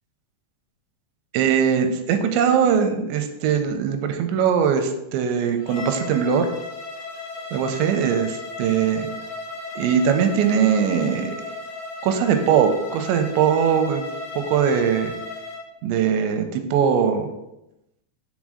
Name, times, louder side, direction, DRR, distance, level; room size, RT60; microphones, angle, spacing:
voice 1, 1.3-6.5 7.5-9.1 9.8-11.4 12.0-14.0 14.4-15.1 15.8-17.3, right 7 dB, 85° right, 7 dB, 2.8 m, -21 dB
Bowed string instrument, 5.6-15.7, left 3 dB, 75° left, 2.8 m, -35 dB
7.3 x 3.7 x 4.9 m, 0.89 s
omnidirectional pair, 5.2 m